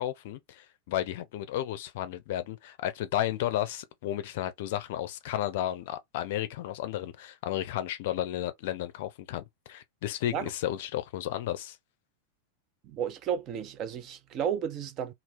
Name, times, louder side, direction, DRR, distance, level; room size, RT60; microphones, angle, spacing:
voice 1, 0.0-11.8, left 12 dB, 50° left, 0.5 m, -33 dB
voice 2, 12.8-15.1, right 8 dB, 35° right, 0.5 m, -33 dB
2.8 x 2.0 x 3.4 m
figure-of-eight pair, 90°, 0 cm